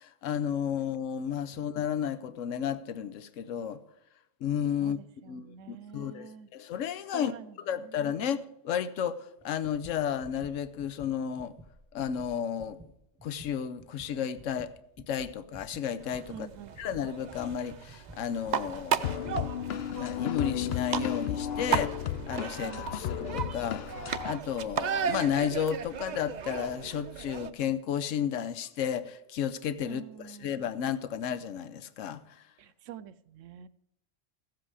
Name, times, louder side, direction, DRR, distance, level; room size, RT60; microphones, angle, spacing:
voice 1, 0.0-3.8 4.4-5.0 5.3-7.3 7.6-11.5 11.9-12.8 13.2-14.7 15.1-16.5 16.8-19.5 20.0-23.8 24.2-32.4, left 8 dB, 90° left, 1.0 m, -33 dB
voice 2, 4.8-6.5 7.1-8.1 16.3-16.7 22.7-23.1 29.9-30.5 32.6-33.7, right 9 dB, 85° right, 1.0 m, -47 dB
sound 1, 9.4-19.5, right 1 dB, ahead, 1.7 m, -52 dB
sound 2, 16.0-27.5, right 8 dB, 55° right, 0.5 m, -35 dB
sound 3, 19.0-24.4, left 10 dB, 60° left, 0.8 m, -33 dB
15.0 x 7.8 x 4.8 m
omnidirectional pair, 1.3 m